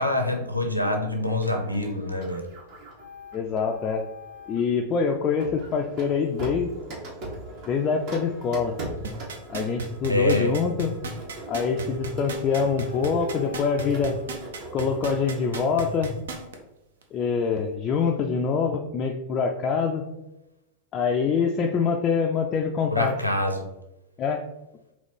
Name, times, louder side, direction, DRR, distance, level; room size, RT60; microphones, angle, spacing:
voice 1, 0.0-2.4 10.1-10.5 22.9-23.6, left 1 dB, 90° left, 3 dB, 0.6 m, -25 dB
Printer, 1.4-4.7 5.4-15.9, equal, 45° right, 1.0 m, -39 dB
voice 2, 3.3-4.1 4.5-6.7 7.7-8.8 9.5-10.9 11.5-14.2 14.7-16.1 17.1-20.1 20.9-23.1 24.2-24.4, left 5 dB, 30° left, 2 dB, 0.3 m, -25 dB
sound 1, 9.0-16.5 17.0-17.1, right 3 dB, 65° right, 0.7 m, -34 dB
4.0 x 3.0 x 3.3 m, 0.94 s
figure-of-eight pair, 90°, 0 cm